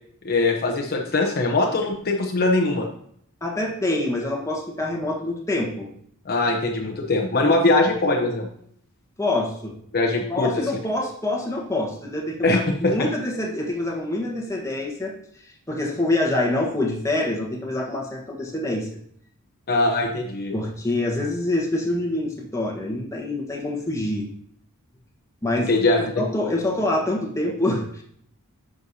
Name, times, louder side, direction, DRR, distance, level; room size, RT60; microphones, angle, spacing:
voice 1, 0.2-2.9 6.3-8.5 9.9-10.5 12.4-12.9 19.7-20.5 25.7-26.1, left 2 dB, 45° left, 1 dB, 0.8 m, -21 dB
voice 2, 3.4-5.9 6.8-7.1 9.2-9.7 10.3-15.1 15.7-18.9 20.5-24.3 25.4-25.7 26.2-28.0, left 1 dB, 15° left, -1 dB, 1.3 m, -26 dB
9.7 x 6.3 x 2.8 m, 0.66 s
head